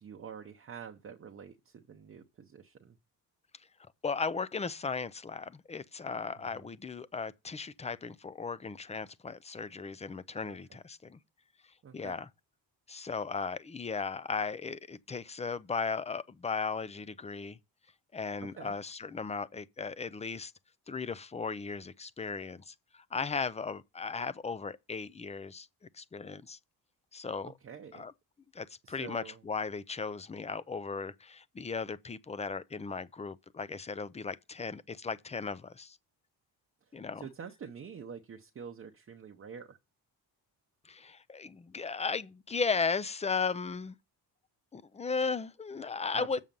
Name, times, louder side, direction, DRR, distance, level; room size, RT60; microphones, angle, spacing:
voice 1, 0.0-3.0 6.5-6.7 10.4-10.6 11.8-12.2 18.4-18.8 27.6-28.1 28.8-29.4 36.9-39.8 46.1-46.4, right 7 dB, 35° right, 0.8 m, -47 dB
voice 2, 4.0-11.2 11.9-12.3 12.9-17.6 18.1-20.5 20.9-26.6 27.1-27.5 27.9-28.1 28.5-36.0 36.9-37.3 40.8-44.0 44.7-46.4, left 5 dB, 15° left, 0.5 m, -36 dB
7.4 x 6.3 x 5.3 m
cardioid pair, 115°, 40 cm